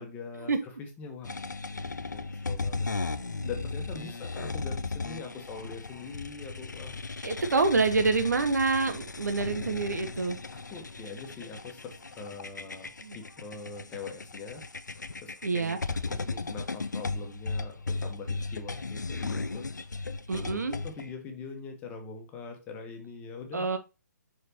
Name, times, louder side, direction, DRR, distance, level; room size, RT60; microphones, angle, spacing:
voice 1, 0.0-1.4 1.7-3.0 3.4-7.0 10.5-14.7 15.2-23.7, left 4 dB, 15° left, 1.5 m, -43 dB
sound 1, 1.2-21.1, left 3 dB, 80° left, 0.7 m, -36 dB
voice 2, 7.2-10.4 13.0-13.2 15.4-15.8 20.3-20.8 23.5-23.8, right 3 dB, 65° right, 1.3 m, -27 dB
6.6 x 5.7 x 3.0 m
figure-of-eight pair, 140°, 10 cm